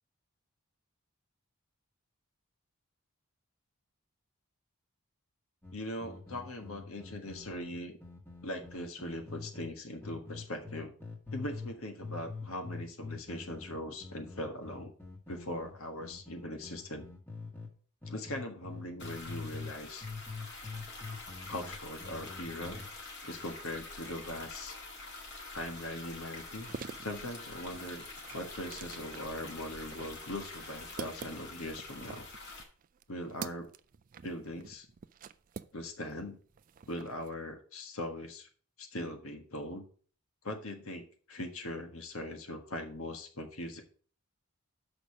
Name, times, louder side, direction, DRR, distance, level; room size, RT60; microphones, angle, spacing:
sound 1, 5.6-9.7 10.0-11.8 12.0-17.7 18.0-19.8 20.0-22.9, left 4 dB, 10° left, 1.4 m, -45 dB
voice 1, 5.7-8.0 8.4-10.9 11.3-14.9 15.3-17.1 18.1-20.1 21.5-22.9 23.2-24.8 25.5-28.0 28.3-32.2 33.1-33.7 34.2-34.9 35.7-36.4 36.9-38.5 38.8-39.9 40.4-43.8, left 1 dB, 65° left, 4 dB, 1.5 m, -40 dB
sound 2, 19.0-32.6, left 3 dB, 50° left, 2.1 m, -46 dB
sound 3, 26.5-36.2 36.5-37.3, right 6 dB, 40° right, 0.3 m, -47 dB
6.7 x 5.2 x 6.3 m, 0.43 s
head